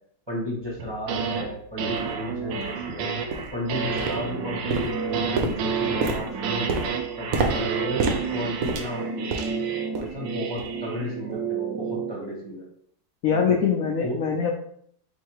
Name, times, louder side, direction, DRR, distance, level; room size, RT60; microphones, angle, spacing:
voice 1, 0.3-3.1 3.5-6.8 7.2-9.3 9.9-12.7 13.3-13.6 14.0-14.2, equal, 20° right, -4 dB, 0.9 m, -33 dB
sound 1, 0.8-1.5 1.8-12.2, right 5 dB, 85° right, 1.3 m, -30 dB
sound 2, 1.3-1.4 2.0-2.1 2.6-2.8 3.3-3.6 4.0-4.4 4.7-9.6 9.9-10.2 10.6-10.8 11.3-11.4, right 4 dB, 65° right, 0.9 m, -29 dB
voice 2, 13.2-14.5, left 6 dB, 80° left, 2 dB, 0.7 m, -23 dB
3.8 x 2.8 x 4.6 m, 0.66 s
omnidirectional pair, 2.0 m